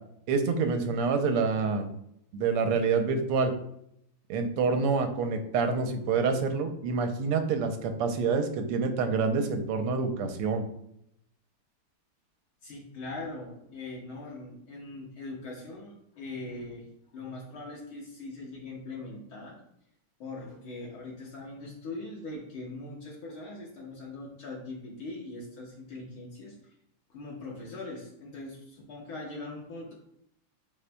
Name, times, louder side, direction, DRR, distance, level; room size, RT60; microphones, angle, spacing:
voice 1, 0.3-1.9 2.3-3.5 4.3-10.6, right 4 dB, 90° right, 6 dB, 1.7 m, -27 dB
voice 2, 12.6-16.9 17.1-19.6 20.2-26.6 27.1-29.9, left 2 dB, 70° left, -4 dB, 1.9 m, -41 dB
11.0 x 4.1 x 2.2 m, 0.75 s
omnidirectional pair, 2.4 m